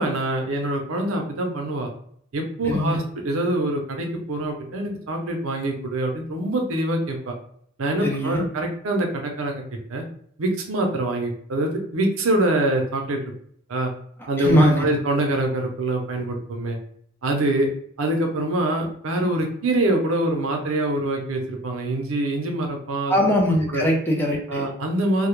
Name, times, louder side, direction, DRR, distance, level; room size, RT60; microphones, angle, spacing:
voice 1, 0.0-1.9 2.3-7.3 7.8-9.6 9.9-10.1 10.4-13.2 13.7-13.9 14.3-16.8 17.2-17.7 18.0-23.1 23.7-23.8 24.5-25.3, right 1 dB, 80° right, 2 dB, 0.6 m, -24 dB
voice 2, 2.6-3.0 8.0-8.4 14.4-14.9 23.1-24.7, equal, 10° left, -1 dB, 0.4 m, -21 dB
2.2 x 2.1 x 3.0 m, 0.64 s
head